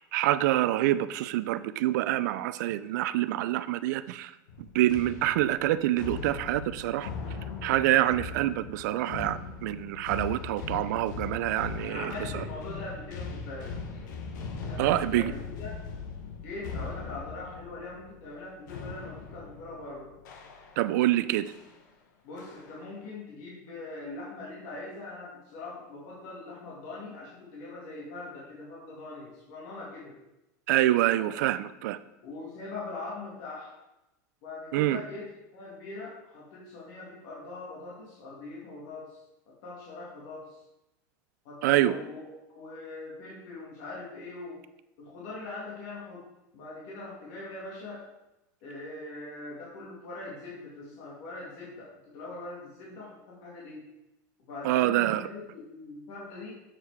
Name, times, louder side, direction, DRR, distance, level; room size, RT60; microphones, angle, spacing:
voice 1, 0.1-4.3 4.7-7.1 7.6-12.1 14.8-15.3 20.8-21.5 30.7-32.0 34.7-35.0 41.6-42.0 54.6-55.3, right 14 dB, 75° right, 14 dB, 0.4 m, -26 dB
sound 1, 4.5-21.0 21.5-21.8 22.4-22.9, left 5 dB, 85° left, 1.2 m, -40 dB
voice 2, 11.8-13.8 14.6-15.8 16.4-20.1 22.2-30.2 31.2-31.3 32.2-33.7 34.4-35.3 35.5-39.2 39.5-40.6 41.4-44.6 45.0-46.3 46.5-48.0 48.6-53.8 54.4-56.6, left 2 dB, 60° left, -5 dB, 2.4 m, -42 dB
7.4 x 4.6 x 5.0 m, 0.93 s
supercardioid pair, 145°, 10 cm